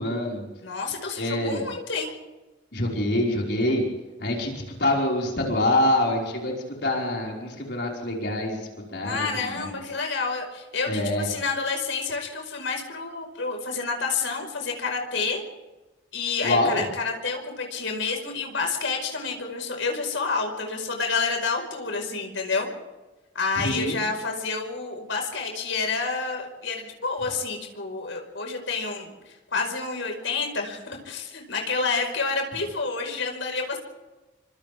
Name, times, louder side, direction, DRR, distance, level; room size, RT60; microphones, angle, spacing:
voice 1, 0.0-0.4 1.2-1.7 2.7-3.8 4.2-6.5 6.8-8.6 8.9-9.3 9.5-9.6 10.9-11.3 16.4-16.8 23.6-24.0, left 1 dB, 60° left, -2 dB, 5.3 m, -25 dB
voice 2, 0.6-2.1 9.0-15.4 16.1-22.7 23.4-29.1 29.5-33.8, left 4 dB, 80° left, 3 dB, 5.1 m, -29 dB
28.5 x 25.0 x 3.6 m, 1.1 s
head